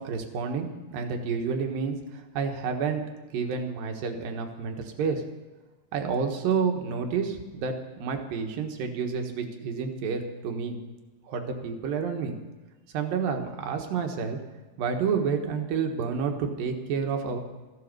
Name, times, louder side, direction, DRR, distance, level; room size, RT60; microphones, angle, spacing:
voice 1, 0.0-3.0 3.3-5.2 5.9-10.8 11.3-12.3 12.9-14.4 14.8-17.4, right 6 dB, 90° right, 4 dB, 3.1 m, -29 dB
14.5 x 11.5 x 6.6 m, 1.2 s
omnidirectional pair, 4.0 m